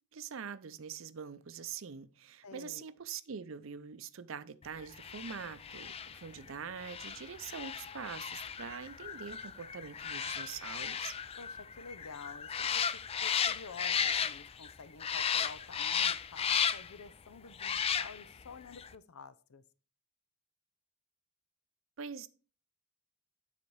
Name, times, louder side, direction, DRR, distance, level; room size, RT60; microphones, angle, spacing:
voice 1, 0.1-11.2 22.0-22.3, right 6 dB, 65° right, 0.5 m, -44 dB
voice 2, 2.4-2.8 11.4-19.6, left 4 dB, 90° left, 0.6 m, -50 dB
sound 1, 4.9-14.7 15.0-17.0 17.5-18.4 18.7-18.9, left 7 dB, 30° left, 0.3 m, -35 dB
9.9 x 4.2 x 4.6 m
head